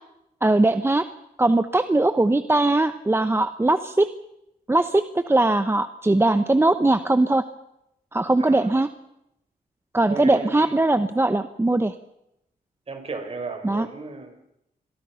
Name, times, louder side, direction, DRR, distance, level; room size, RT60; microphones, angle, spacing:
voice 1, 0.4-1.0 1.4-4.1 4.7-7.4 8.1-8.9 9.9-11.9 13.6-13.9, right 2 dB, 15° right, 11 dB, 0.9 m, -20 dB
voice 2, 8.4-8.7 10.1-10.8 12.9-14.4, right 3 dB, 40° right, 7 dB, 4.4 m, -35 dB
28.5 x 23.0 x 5.8 m, 0.81 s
cardioid pair, 110°, 16 cm